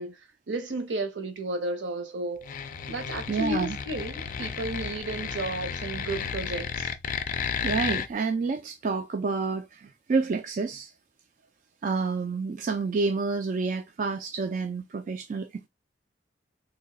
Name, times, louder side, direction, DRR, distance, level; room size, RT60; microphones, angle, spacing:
voice 1, 0.0-2.5 2.9-6.9, right 1 dB, 70° right, 0.7 m, -33 dB
sound 1, 2.4-8.1, left 6 dB, 45° left, 0.4 m, -33 dB
voice 2, 3.3-3.8 7.6-10.9 11.8-15.7, right 4 dB, 45° right, 0.3 m, -29 dB
2.9 x 2.3 x 3.8 m
head